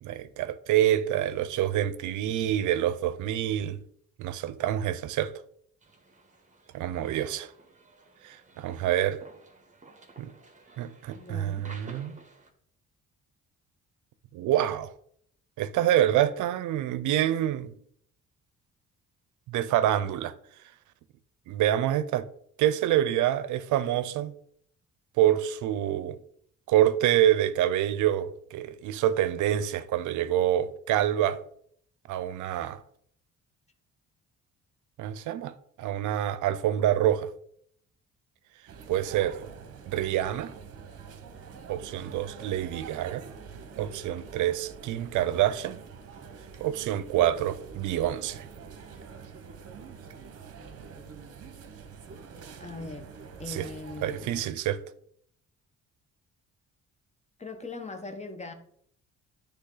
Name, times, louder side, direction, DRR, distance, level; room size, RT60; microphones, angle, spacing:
voice 1, 0.0-3.8 4.2-5.3 6.7-7.5 8.2-9.2 10.2-10.3 10.8-12.2 14.3-14.9 15.6-17.7 19.5-20.3 21.5-22.3 22.6-24.3 25.2-26.2 26.7-31.4 32.1-32.8 35.0-35.5 35.8-37.3 38.9-39.4 39.9-40.5 41.7-43.2 43.8-45.8 46.6-48.5 53.5-53.7 54.0-54.8, right 12 dB, 80° right, 0.6 m, -26 dB
sound 1, 5.8-12.5, right 3 dB, 25° right, 1.3 m, -53 dB
voice 2, 11.1-11.7 52.6-53.1 53.4-54.5 57.4-58.5, left 3 dB, 20° left, 1.0 m, -40 dB
sound 2, 38.7-54.4, right 6 dB, 50° right, 1.0 m, -46 dB
10.0 x 3.4 x 3.9 m
cardioid pair, 90°, 30 cm